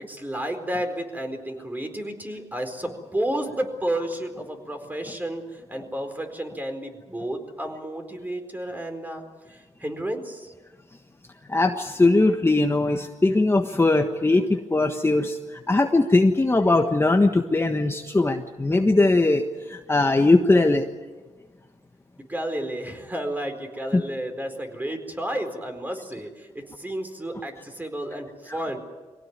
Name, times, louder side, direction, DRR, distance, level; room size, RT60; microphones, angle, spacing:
voice 1, 0.0-10.5 22.3-28.8, right 1 dB, 15° right, 5 dB, 4.3 m, -31 dB
voice 2, 11.5-20.9 23.9-24.0, left 2 dB, 20° left, 4 dB, 1.4 m, -20 dB
23.5 x 17.5 x 9.6 m, 1.3 s
cardioid pair, 75°, 12 cm